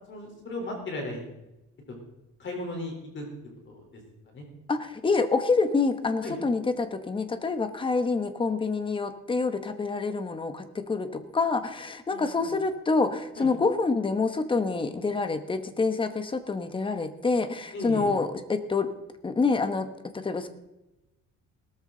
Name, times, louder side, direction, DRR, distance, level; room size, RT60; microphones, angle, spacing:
voice 1, 0.1-1.3 1.9-2.0 2.4-3.2 3.7-4.0 4.3-4.4 6.2-6.4 12.1-12.6 13.4-13.5 17.7-18.1, left 1 dB, 40° left, 1 dB, 3.8 m, -36 dB
voice 2, 4.7-18.9 19.2-19.9 20.1-20.5, left 4 dB, 15° left, 9 dB, 1.0 m, -27 dB
18.0 x 13.5 x 3.9 m, 0.96 s
cardioid pair, 170°, 30 cm